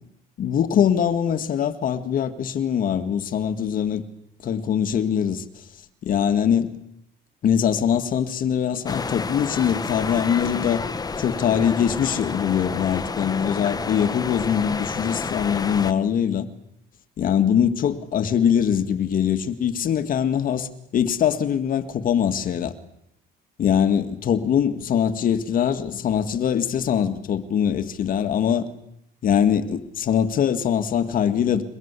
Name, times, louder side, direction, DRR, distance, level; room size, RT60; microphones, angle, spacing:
voice 1, 0.4-4.0 4.4-5.5 6.0-6.8 7.4-10.8 11.2-16.5 17.2-22.7 23.6-28.7 29.2-31.6, left 8 dB, 55° left, 2.1 m, -22 dB
sound 1, 8.9-15.9, left 4 dB, 20° left, 1.2 m, -30 dB
23.5 x 22.0 x 8.4 m
cardioid pair, 110°, 17 cm